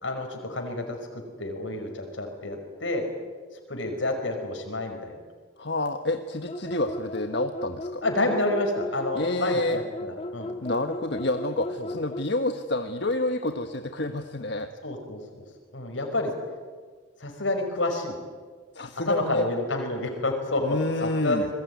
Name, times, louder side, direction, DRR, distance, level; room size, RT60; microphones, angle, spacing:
voice 1, 0.0-3.0 3.7-5.2 6.7-6.8 8.0-10.5 11.8-11.9 14.8-15.4 15.7-16.3 17.2-18.2 19.1-21.5, left 2 dB, 85° left, 3 dB, 5.4 m, -29 dB
voice 2, 5.6-8.0 9.1-9.8 10.6-14.7 18.7-19.4 20.6-21.4, left 2 dB, 60° left, 6 dB, 1.4 m, -28 dB
sound 1, 6.5-12.3, left 1 dB, 30° left, 1.8 m, -36 dB
27.5 x 21.5 x 9.5 m, 1.5 s
head